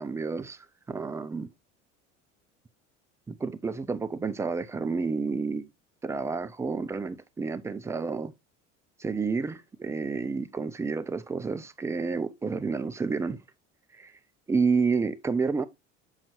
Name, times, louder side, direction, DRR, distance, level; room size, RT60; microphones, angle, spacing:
voice 1, 0.0-1.5 3.3-5.7 6.0-8.3 9.0-13.4 13.9-14.1 14.5-15.6, right 4 dB, 10° right, 0.3 m, -30 dB
6.4 x 5.6 x 2.7 m
figure-of-eight pair, 65°, 37 cm